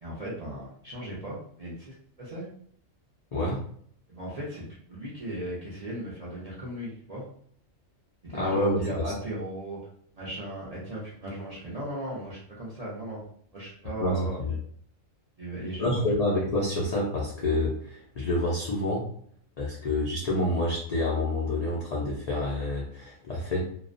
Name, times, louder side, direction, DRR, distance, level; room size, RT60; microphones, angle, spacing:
voice 1, 0.0-2.5 4.1-7.2 8.2-9.8 10.1-13.2 13.5-14.4 15.4-16.0, right 1 dB, 50° right, -7 dB, 0.4 m, -37 dB
voice 2, 3.3-3.6 8.3-9.1 14.0-14.6 15.8-19.0 19.6-23.7, left 1 dB, 60° left, -5 dB, 0.4 m, -28 dB
2.4 x 2.1 x 2.4 m, 0.62 s
omnidirectional pair, 1.3 m